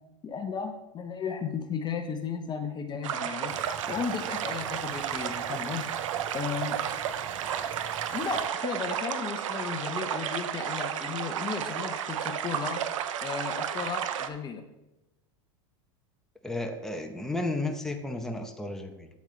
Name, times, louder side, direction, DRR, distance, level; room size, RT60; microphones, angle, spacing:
voice 1, 0.2-3.5 3.9-5.9 6.3-6.8 7.8-12.8 13.2-14.6, left 6 dB, 25° left, 6 dB, 0.9 m, -35 dB
sound 1, 3.0-14.3, right 9 dB, 80° right, 0.7 m, -32 dB
Fire, 3.5-8.5, right 10 dB, 35° right, 0.5 m, -46 dB
voice 2, 16.4-19.1, left 2 dB, 5° left, 4 dB, 0.9 m, -33 dB
8.3 x 8.2 x 3.2 m, 0.99 s
hypercardioid pair, 105°, 16 cm